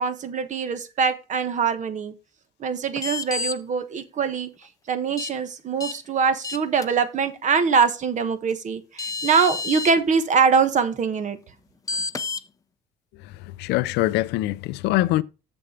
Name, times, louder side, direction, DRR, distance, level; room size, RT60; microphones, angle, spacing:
voice 1, 0.0-2.1 2.6-11.4, right 5 dB, 45° right, 1.3 m, -23 dB
sound 1, 3.0-3.5 5.2-5.3 5.8-5.9 6.4-6.9 8.5-8.6 9.0-9.9 11.9-12.4, left 4 dB, 20° left, 0.6 m, -29 dB
voice 2, 13.1-15.2, left 17 dB, 80° left, 0.4 m, -24 dB
6.9 x 6.7 x 5.0 m
cardioid pair, 110°, 17 cm